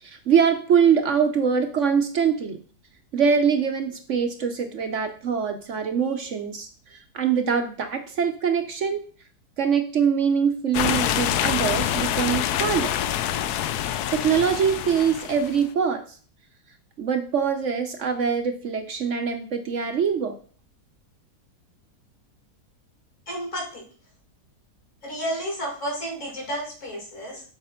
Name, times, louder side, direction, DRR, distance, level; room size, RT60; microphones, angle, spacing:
voice 1, 0.0-2.6 3.1-9.0 9.6-12.9 14.1-16.0 17.0-20.4, right 7 dB, 55° right, 7 dB, 0.9 m, -23 dB
sound 1, 10.7-15.7, left 11 dB, 75° left, 1.1 m, -26 dB
voice 2, 23.3-23.8 25.0-27.4, equal, 45° left, -1 dB, 3.3 m, -31 dB
7.3 x 4.4 x 5.6 m, 0.43 s
omnidirectional pair, 1.8 m